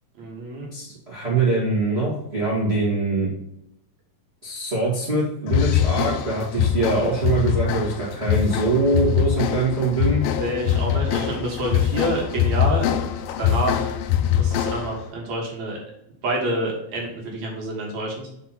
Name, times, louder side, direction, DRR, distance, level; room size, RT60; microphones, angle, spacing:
voice 1, 0.2-0.7 10.4-12.9 13.4-13.9 14.4-15.8 16.2-18.3, right 1 dB, 60° right, -1 dB, 2.6 m, -27 dB
voice 2, 0.7-3.3 4.4-10.2, right 3 dB, 25° right, -7 dB, 1.3 m, -23 dB
sound 1, 5.5-15.0, left 10 dB, 85° left, 2.3 m, -23 dB
6.2 x 4.3 x 5.5 m, 0.80 s
omnidirectional pair, 4.0 m